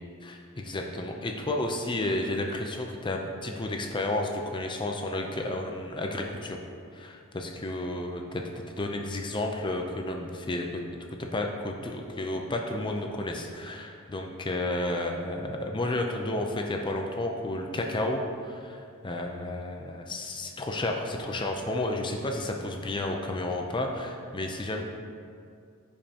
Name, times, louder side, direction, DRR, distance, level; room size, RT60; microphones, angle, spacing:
voice 1, 0.2-6.6 6.9-10.8 11.2-24.8, left 1 dB, 20° left, 2 dB, 0.5 m, -32 dB
15.0 x 5.3 x 2.9 m, 2.3 s
head